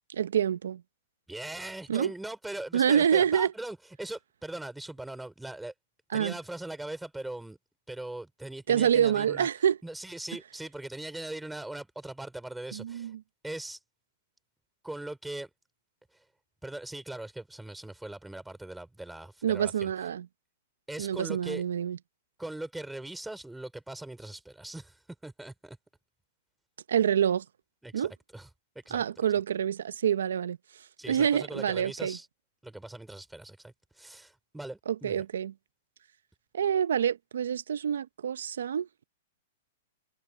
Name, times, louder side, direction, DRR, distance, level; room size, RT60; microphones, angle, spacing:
voice 1, 0.1-0.8 1.9-2.1 2.7-3.5 6.1-6.3 8.7-9.8 12.7-13.2 19.4-20.3 21.0-22.0 26.9-27.4 27.9-28.1 28.9-30.6 31.1-32.2 34.9-35.5 36.5-38.9, right 9 dB, 85° right, 0.7 m, -27 dB
voice 2, 1.3-5.7 6.1-7.6 7.9-9.5 9.8-13.1 13.4-13.8 14.8-15.5 16.1-16.2 16.6-19.9 20.9-21.6 22.4-25.8 27.8-28.5 28.9-29.0 31.0-32.3 32.6-35.2, right 2 dB, 5° right, 3.6 m, -40 dB
hypercardioid pair, 165°, 0 cm